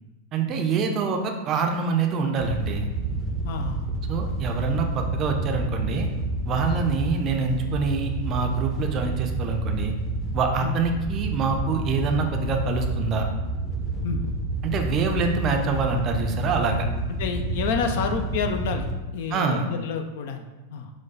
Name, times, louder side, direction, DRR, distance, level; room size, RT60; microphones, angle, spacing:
voice 1, 0.3-2.9 4.1-6.1 6.5-9.9 10.3-13.2 14.6-16.9 19.3-19.6, right 4 dB, 30° right, 4 dB, 0.5 m, -25 dB
Wind / Boat Water vehicle, 2.4-18.9, right 2 dB, 10° left, 0.7 m, -29 dB
voice 2, 3.4-3.9 6.7-6.8 10.6-10.7 14.0-14.3 17.2-18.9 19.1-20.5 20.7-20.9, left 5 dB, 50° left, 5 dB, 0.4 m, -29 dB
4.6 x 2.2 x 4.0 m, 1.1 s
figure-of-eight pair, 90°, 0 cm